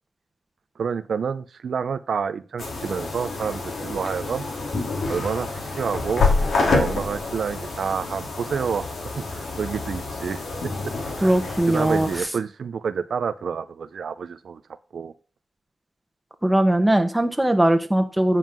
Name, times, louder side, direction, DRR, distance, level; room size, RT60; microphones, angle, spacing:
voice 1, 0.8-4.4 5.1-6.3 6.8-8.8 9.1-10.4 10.8-14.6 14.9-15.1, right 6 dB, 75° right, 11 dB, 0.6 m, -29 dB
sound 1, 2.6-12.2, left 3 dB, 80° left, 3.0 m, -27 dB
voice 2, 11.2-12.1 16.4-18.4, right 1 dB, 10° right, 7 dB, 1.3 m, -20 dB
9.2 x 5.6 x 6.1 m, 0.35 s
wide cardioid pair, 95°, 0 cm